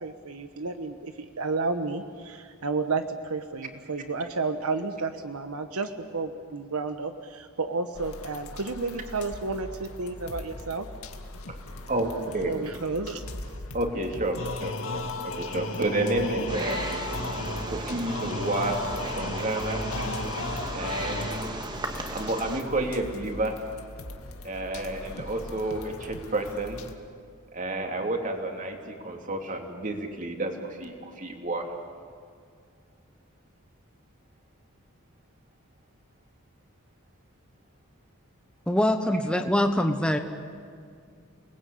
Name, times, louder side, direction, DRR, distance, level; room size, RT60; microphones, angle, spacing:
voice 1, 0.0-10.9 12.5-13.2, right 3 dB, 85° right, 7 dB, 1.2 m, -31 dB
sound 1, 7.9-26.9, left 1 dB, 80° left, 2.0 m, -41 dB
voice 2, 11.9-12.5 13.7-16.9 17.7-19.9 20.7-21.7 22.1-23.6 24.4-26.8 27.5-31.7, right 2 dB, 35° right, 3 dB, 2.9 m, -30 dB
sound 2, 14.4-21.8, left 2 dB, 65° left, 2.0 m, -34 dB
Wild animals, 16.5-22.6, right 2 dB, 20° right, 1.7 m, -36 dB
voice 3, 38.7-40.2, left 1 dB, 5° left, 5 dB, 1.1 m, -23 dB
29.5 x 20.0 x 8.6 m, 2.2 s
head